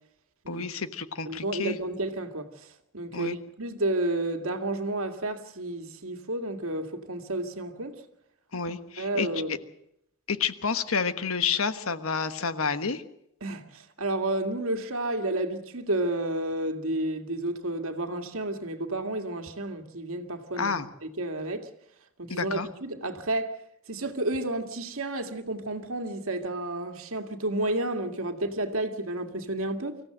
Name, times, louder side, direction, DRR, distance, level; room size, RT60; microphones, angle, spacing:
voice 1, 0.5-1.8 3.1-3.4 8.5-9.3 10.3-13.0 20.6-20.9 22.3-22.7, left 5 dB, 75° left, 1.3 m, -29 dB
voice 2, 1.3-2.7 2.9-8.0 9.0-9.6 13.4-21.7 22.2-23.5 23.9-30.0, right 2 dB, 75° right, 2.1 m, -31 dB
25.0 x 15.5 x 7.8 m
head